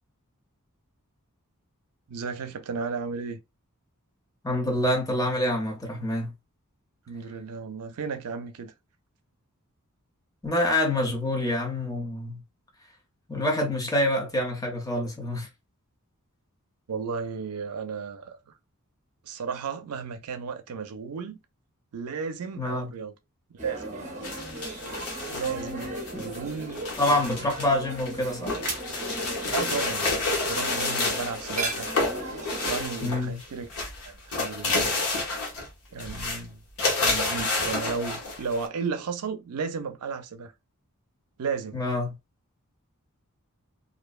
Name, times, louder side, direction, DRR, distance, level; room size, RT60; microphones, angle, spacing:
voice 1, 2.1-3.4 7.1-8.7 16.9-18.5 19.2-21.4 21.9-23.1 23.5-24.0 25.3-27.5 29.5-30.2 30.5-31.9 32.6-33.7 34.0-34.9 35.9-36.6 37.0-40.5 41.4-41.8, right 5 dB, 80° right, 0.5 m, -34 dB
voice 2, 4.4-6.3 10.4-12.4 13.3-15.5 22.6-22.9 26.1-26.3 27.0-28.6 33.0-33.4 41.7-42.1, left 1 dB, 15° left, 0.7 m, -26 dB
sound 1, 23.6-32.9, right 2 dB, 35° right, 0.8 m, -36 dB
sound 2, 24.2-27.7 28.0-33.4 33.7-35.7 36.0-36.4 36.8-38.7, left 3 dB, 70° left, 1.0 m, -29 dB
2.6 x 2.2 x 2.3 m
head